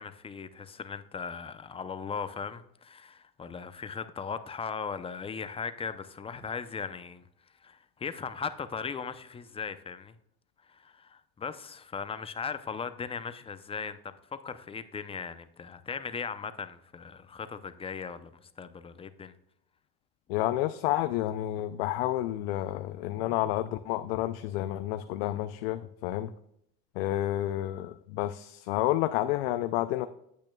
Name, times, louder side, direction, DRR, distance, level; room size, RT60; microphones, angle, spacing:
voice 1, 0.0-7.2 7.6-10.2 10.6-19.3, left 6 dB, 20° left, 0.6 m, -38 dB
voice 2, 20.3-26.3 27.0-30.1, left 14 dB, 85° left, 0.5 m, -30 dB
8.9 x 8.4 x 2.3 m
supercardioid pair, 105°, 30 cm